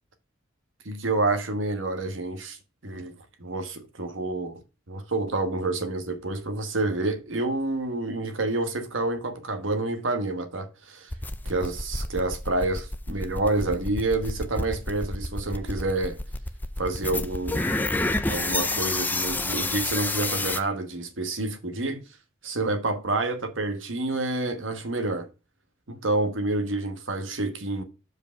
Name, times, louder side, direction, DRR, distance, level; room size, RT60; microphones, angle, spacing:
voice 1, 0.8-2.6 2.8-4.6 4.9-11.1 11.4-16.2 16.8-17.8 18.3-22.0 22.4-25.3 25.9-27.8, right 2 dB, 75° right, 1.3 m, -28 dB
sound 1, 11.1-20.6, left 2 dB, 10° left, 0.5 m, -28 dB
5.4 x 4.9 x 6.2 m
head